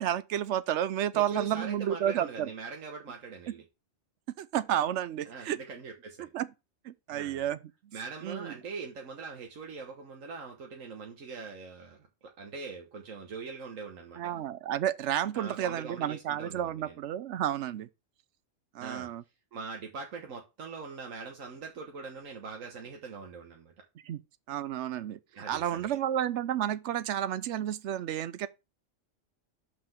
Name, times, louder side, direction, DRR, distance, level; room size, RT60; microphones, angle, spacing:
voice 1, 0.0-2.5 4.4-5.6 6.3-6.5 6.8-7.6 8.2-8.5 14.2-17.9 18.7-19.2 24.0-24.2 24.5-25.2 25.5-28.5, right 11 dB, 70° right, 0.9 m, -31 dB
voice 2, 1.1-3.6 5.2-6.3 7.1-7.5 7.9-14.4 15.3-17.0 18.8-19.1 19.5-23.7 25.3-25.9, right 4 dB, 90° right, 1.6 m, -42 dB
5.8 x 5.0 x 6.5 m
omnidirectional pair, 1.3 m